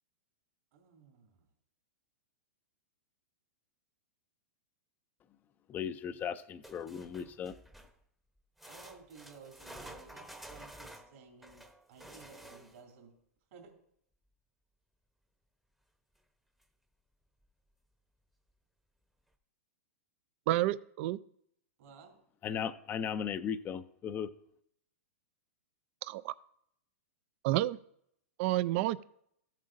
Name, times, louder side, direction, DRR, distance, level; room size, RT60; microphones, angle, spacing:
voice 1, 0.7-1.5 8.6-13.1 13.5-13.7 21.8-22.2, right 5 dB, 65° right, 1 dB, 3.4 m, -56 dB
voice 2, 5.7-7.5 22.4-24.3, left 7 dB, 25° left, 10 dB, 0.4 m, -37 dB
sound 1, 6.6-8.0 8.6-12.9 16.2-16.3 16.6-16.7 17.4-17.5, right 1 dB, 5° right, 0.8 m, -51 dB
voice 3, 20.5-21.2 26.0-26.3 27.4-27.8 28.4-29.0, right 16 dB, 50° right, 17 dB, 0.4 m, -30 dB
14.0 x 7.4 x 2.6 m, 0.70 s
hypercardioid pair, 125°, 8 cm